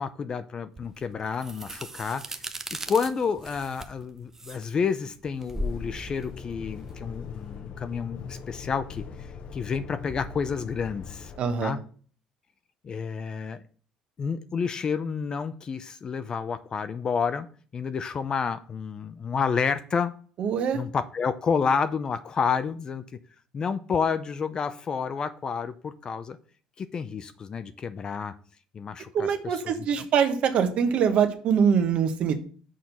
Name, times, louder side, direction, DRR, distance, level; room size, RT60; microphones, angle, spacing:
voice 1, 0.0-2.2 2.7-9.0 9.5-11.3 11.6-11.8 12.8-13.6 14.2-17.5 17.7-20.1 20.7-23.0 23.5-26.4 26.8-28.3 28.7-29.7, left 6 dB, 35° left, 11 dB, 0.5 m, -29 dB
sound 1, 0.8-7.5, right 1 dB, 15° right, 0.6 m, -38 dB
sound 2, 5.5-11.4, left 6 dB, 50° left, 0.9 m, -41 dB
voice 2, 11.4-11.8 20.4-20.8 29.1-32.4, right 7 dB, 55° right, 7 dB, 1.1 m, -24 dB
6.3 x 4.4 x 5.3 m, 0.43 s
cardioid pair, 120°, 2 cm